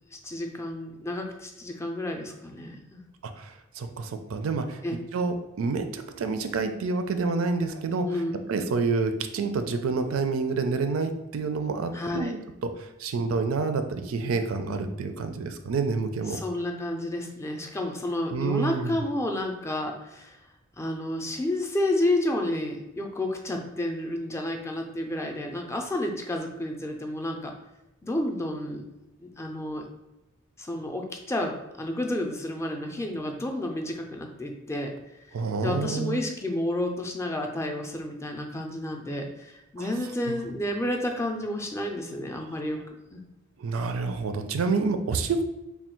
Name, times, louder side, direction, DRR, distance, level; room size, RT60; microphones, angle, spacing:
voice 1, 0.2-3.0 4.8-5.0 8.0-8.3 11.9-12.3 16.3-20.4 20.8-27.5 28.0-28.8 29.2-29.9 30.6-34.9 35.3-35.4 35.6-42.8 43.1-43.2, left 1 dB, 15° left, 3 dB, 0.4 m, -30 dB
voice 2, 3.2-8.1 8.5-12.4 12.8-16.4 18.3-19.0 35.3-36.2 39.8-39.9 40.3-40.4 43.6-45.4, right 4 dB, 85° right, 8 dB, 0.4 m, -28 dB
3.4 x 2.3 x 4.3 m, 0.94 s
head